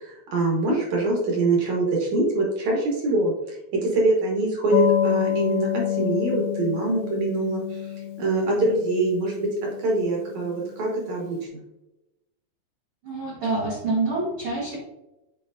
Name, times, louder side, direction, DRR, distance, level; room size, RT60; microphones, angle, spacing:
voice 1, 0.0-9.5 9.8-11.6, right 2 dB, 65° right, -2 dB, 1.9 m, -24 dB
sound 1, 4.7-10.9, left 11 dB, 80° left, 2.2 m, -28 dB
voice 2, 13.0-14.8, right 3 dB, 85° right, -5 dB, 1.1 m, -26 dB
8.5 x 4.5 x 2.5 m, 0.95 s
omnidirectional pair, 4.5 m